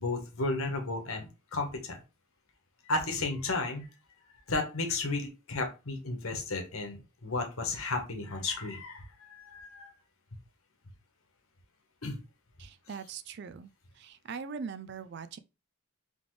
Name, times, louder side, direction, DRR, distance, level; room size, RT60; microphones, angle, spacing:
voice 1, 0.0-2.0 2.9-3.8 4.5-7.0 7.2-9.9 12.0-12.2, left 3 dB, 80° left, 1.3 m, -33 dB
voice 2, 12.6-13.7 14.0-15.4, right 5 dB, 50° right, 0.4 m, -41 dB
3.9 x 3.4 x 3.2 m
head